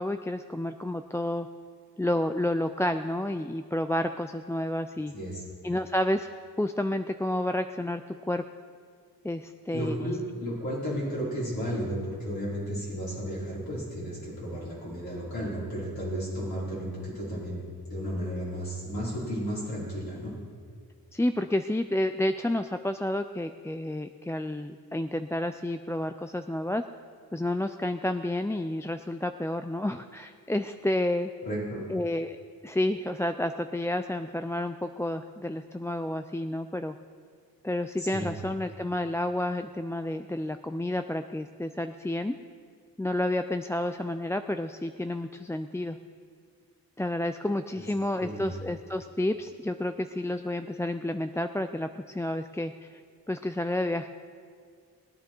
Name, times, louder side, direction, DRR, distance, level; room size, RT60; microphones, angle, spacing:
voice 1, 0.0-1.5 2.0-5.1 5.6-6.3 6.6-8.4 9.2-10.1 21.1-26.8 27.3-31.3 31.9-32.4 32.6-37.0 37.6-42.3 43.0-46.0 47.0-53.0 53.3-54.1, left 1 dB, 10° left, 8 dB, 0.4 m, -30 dB
voice 2, 9.7-17.6 17.9-20.3 31.4-31.8 38.0-38.3 47.7-47.8 48.2-48.5, equal, 75° left, -9 dB, 4.5 m, -33 dB
20.5 x 9.4 x 4.5 m, 2.1 s
wide cardioid pair, 60°, 36 cm